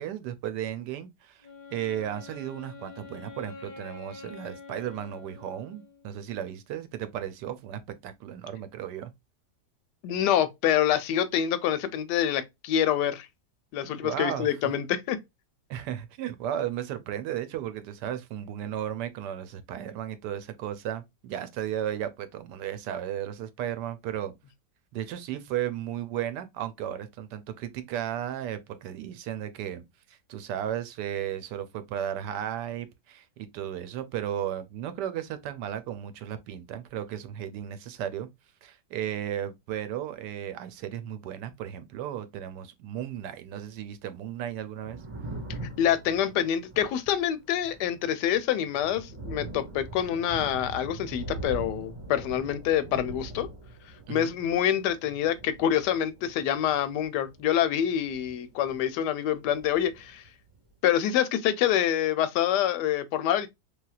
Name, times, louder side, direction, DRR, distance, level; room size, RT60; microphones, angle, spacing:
voice 1, 0.0-9.1 13.8-14.5 15.7-24.3 24.9-29.8 30.1-38.3 38.6-45.0 54.1-54.3, right 10 dB, 85° right, 1.2 m, -35 dB
Wind instrument woodwind instrument, 1.4-6.2, left 4 dB, 45° left, 0.7 m, -46 dB
voice 2, 10.0-13.3 13.7-15.2 45.8-53.5 54.1-60.2 60.8-63.5, left 10 dB, 80° left, 1.2 m, -26 dB
Thunder, 44.6-59.1 59.3-60.6, right 3 dB, 20° right, 1.3 m, -42 dB
3.3 x 2.8 x 2.3 m
omnidirectional pair, 1.8 m